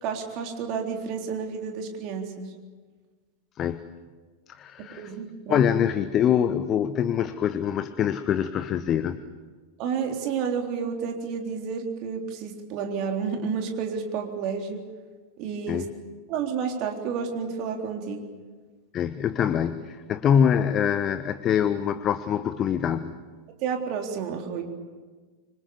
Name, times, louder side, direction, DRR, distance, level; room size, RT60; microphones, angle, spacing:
voice 1, 0.0-2.5 5.0-5.7 9.8-14.8 15.4-15.8 16.3-18.2 23.6-24.6, right 6 dB, 40° right, 3 dB, 3.7 m, -30 dB
voice 2, 4.5-5.2 5.5-9.2 15.7-15.9 18.9-23.1, left 8 dB, 30° left, 12 dB, 1.0 m, -24 dB
25.5 x 25.5 x 7.1 m, 1.4 s
figure-of-eight pair, 90°, 0 cm